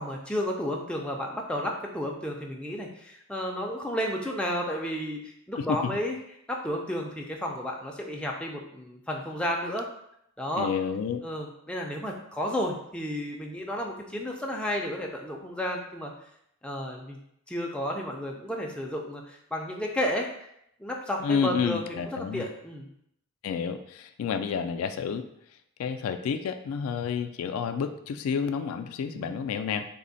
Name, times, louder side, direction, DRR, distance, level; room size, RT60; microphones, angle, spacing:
voice 1, 0.0-6.1 6.5-9.9 10.4-10.7 11.2-16.1 16.6-17.2 17.5-20.5 20.8-22.9 29.1-29.5, equal, 5° left, -1 dB, 0.4 m, -32 dB
voice 2, 5.6-6.0 10.6-11.3 21.2-22.5 23.4-25.3 25.8-29.9, left 6 dB, 80° left, 13 dB, 0.3 m, -30 dB
3.3 x 2.1 x 3.9 m, 0.74 s
head